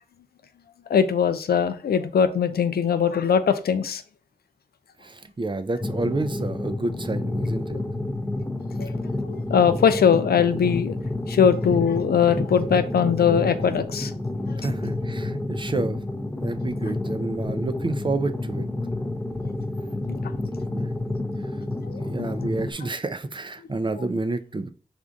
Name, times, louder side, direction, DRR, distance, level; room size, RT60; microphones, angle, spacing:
voice 1, 0.9-4.0 8.8-8.9 9.2-10.9 11.3-14.1 20.1-20.2 21.9-22.0, left 7 dB, 80° left, 10 dB, 0.4 m, -21 dB
voice 2, 5.0-7.8 14.6-16.0 16.4-18.6 20.7-20.9 22.0-24.7, right 2 dB, 30° right, 11 dB, 0.4 m, -29 dB
sound 1, 5.8-22.7, left 2 dB, 15° left, 0.6 m, -29 dB
3.5 x 2.5 x 3.8 m, 0.40 s
cardioid pair, 45°, 16 cm